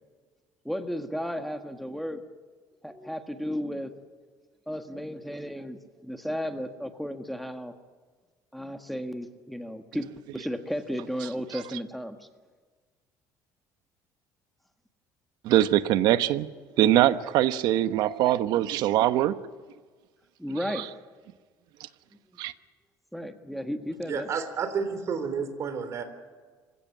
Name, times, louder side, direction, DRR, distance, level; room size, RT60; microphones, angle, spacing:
voice 1, 0.6-2.2 2.8-3.9 4.7-7.7 8.5-10.1 10.3-12.2 20.4-20.9 23.1-24.3, equal, ahead, 7 dB, 1.6 m, -34 dB
voice 2, 15.4-16.5 16.8-19.4 20.7-20.8 22.4-22.5, right 13 dB, 75° right, 13 dB, 1.1 m, -22 dB
voice 3, 24.1-26.0, right 6 dB, 45° right, 10 dB, 3.6 m, -30 dB
26.5 x 16.5 x 8.8 m, 1.5 s
cardioid pair, 125°, 7 cm